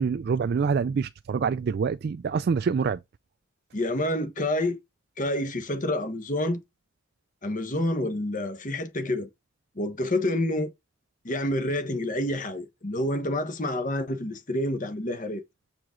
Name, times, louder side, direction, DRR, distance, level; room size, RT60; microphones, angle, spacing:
voice 1, 0.0-3.0, right 5 dB, 50° right, 0.3 m, -26 dB
voice 2, 3.7-4.8 5.2-6.6 7.4-9.3 9.7-10.7 11.2-15.4, left 1 dB, 40° left, 1.1 m, -28 dB
7.1 x 4.9 x 3.7 m
head